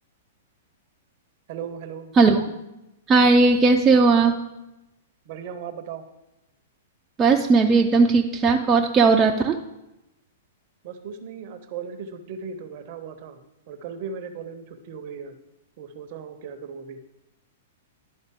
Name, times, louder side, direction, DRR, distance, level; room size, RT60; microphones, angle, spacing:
voice 1, 1.5-2.1 5.3-6.0 10.8-13.4 13.7-15.3 15.8-17.0, right 6 dB, 45° right, 8 dB, 0.7 m, -37 dB
voice 2, 3.1-4.4 7.2-9.6, right 4 dB, 20° right, 2 dB, 0.5 m, -17 dB
11.5 x 4.0 x 3.6 m, 0.92 s
figure-of-eight pair, 105°, 0 cm